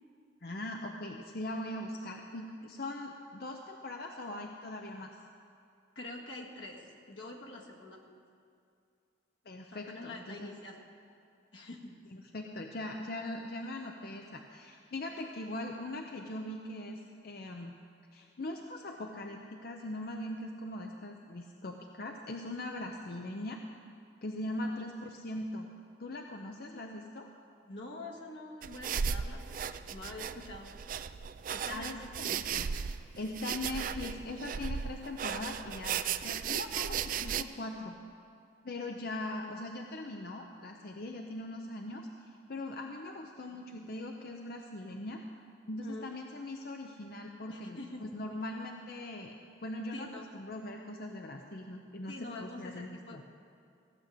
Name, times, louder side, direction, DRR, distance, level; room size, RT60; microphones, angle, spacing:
voice 1, 0.4-5.2 9.5-10.5 12.3-17.8 18.1-23.6 24.2-25.7 26.0-27.3 31.7-32.7 33.2-38.0 38.6-45.2 45.7-49.3 49.6-53.2, left 1 dB, 55° left, 2 dB, 0.7 m, -41 dB
voice 2, 6.0-8.0 9.7-10.7 11.5-12.0 24.7-24.8 27.6-30.7 31.5-32.4 45.8-46.1 47.5-48.0 49.9-50.2 52.1-53.2, left 2 dB, 80° left, -1 dB, 1.7 m, -46 dB
sound 1, 28.6-37.4, right 7 dB, 45° right, 0.3 m, -36 dB
15.5 x 6.4 x 8.4 m, 2.4 s
head